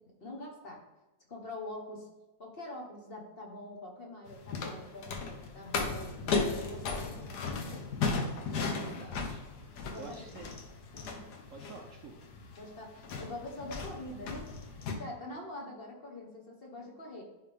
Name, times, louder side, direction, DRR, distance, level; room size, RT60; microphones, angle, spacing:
voice 1, 0.2-0.8 1.3-2.1 2.4-6.2 6.5-7.9 8.5-8.7 9.8-10.2 10.9-11.3 12.6-14.4 15.0-17.2, left 1 dB, 35° left, 0 dB, 1.2 m, -44 dB
sound 1, 4.3-14.9, left 4 dB, 70° left, 1.5 m, -36 dB
voice 2, 8.7-9.4 9.9-10.6 11.5-12.1, right 4 dB, 60° right, 2 dB, 0.9 m, -49 dB
10.5 x 3.6 x 3.5 m, 1.1 s
omnidirectional pair, 1.9 m